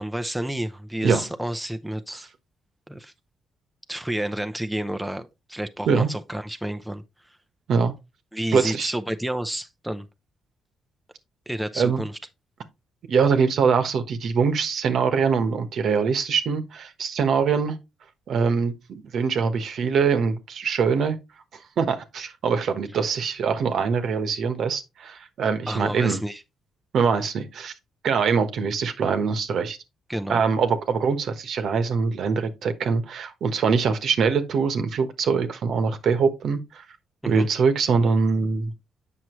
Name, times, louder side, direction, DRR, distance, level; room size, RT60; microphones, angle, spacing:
voice 1, 0.0-2.3 2.9-3.1 3.9-7.0 8.3-10.1 11.5-12.1 25.7-26.4 30.1-30.4 37.2-37.5, right 1 dB, 5° right, 0.7 m, -30 dB
voice 2, 8.5-8.9 11.8-12.0 13.1-17.8 18.3-21.2 21.8-26.2 26.9-27.7 28.0-29.8 30.3-36.8 37.3-38.7, right 5 dB, 65° right, 1.2 m, -23 dB
8.0 x 5.9 x 3.0 m
cardioid pair, 90°, 0 cm